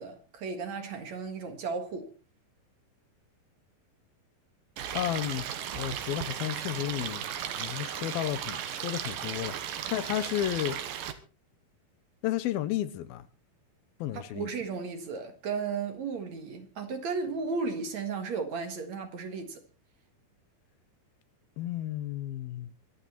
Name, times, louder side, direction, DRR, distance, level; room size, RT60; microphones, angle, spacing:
voice 1, 0.0-2.1 14.3-19.6, right 5 dB, 55° right, 2.7 m, -34 dB
Stream, 4.8-11.1, right 9 dB, 70° right, 2.8 m, -36 dB
voice 2, 4.9-5.5 5.7-7.2 7.5-10.8 12.2-13.3 14.0-14.5 21.6-22.7, left 12 dB, 80° left, 2.8 m, -32 dB
24.5 x 8.9 x 4.2 m
omnidirectional pair, 4.3 m